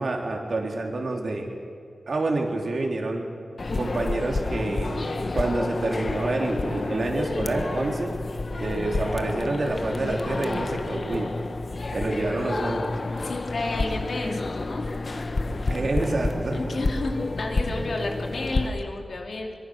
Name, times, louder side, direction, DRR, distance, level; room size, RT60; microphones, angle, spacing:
voice 1, 0.0-1.5 2.1-3.3 3.8-8.1 8.5-11.3 11.9-13.3 15.7-16.8, right 2 dB, 65° right, 1 dB, 3.3 m, -28 dB
sound 1, 3.6-18.7, left 2 dB, 50° left, 1.1 m, -29 dB
voice 2, 13.2-14.8 16.5-19.5, left 2 dB, 75° left, 2 dB, 2.6 m, -31 dB
24.0 x 22.5 x 6.4 m, 2.4 s
wide cardioid pair, 115°, 0 cm